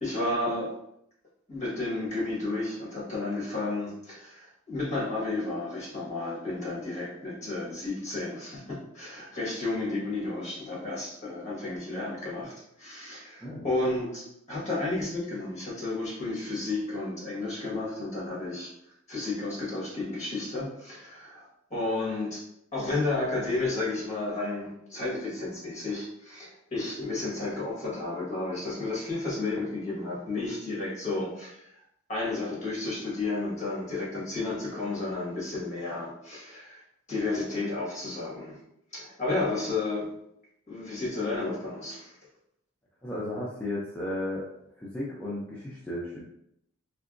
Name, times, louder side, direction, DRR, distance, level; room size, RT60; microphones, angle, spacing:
voice 1, 0.0-0.7 1.5-12.5 12.8-18.7 19.1-22.4 22.7-31.6 32.1-36.8 37.1-38.6 38.9-40.1 40.7-42.1, left 2 dB, 35° left, -5 dB, 1.4 m, -32 dB
voice 2, 43.0-44.4 44.8-46.2, left 1 dB, 10° left, -7 dB, 0.4 m, -34 dB
3.4 x 2.9 x 2.5 m, 0.77 s
head